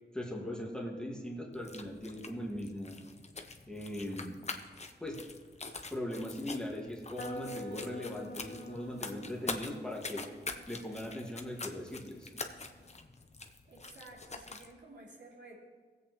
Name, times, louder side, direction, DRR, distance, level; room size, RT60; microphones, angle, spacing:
voice 1, 0.1-3.0 3.7-4.4 5.0-5.2 5.9-10.2 10.7-12.3, left 1 dB, 5° left, -1 dB, 1.9 m, -40 dB
sound 1, 1.5-14.7, left 3 dB, 40° left, 0.8 m, -45 dB
sound 2, 7.2-12.9, left 1 dB, 65° left, 1.2 m, -48 dB
voice 2, 13.7-15.6, right 2 dB, 85° right, -5 dB, 3.0 m, -53 dB
18.5 x 8.0 x 3.1 m, 1.5 s
wide cardioid pair, 85°, 18 cm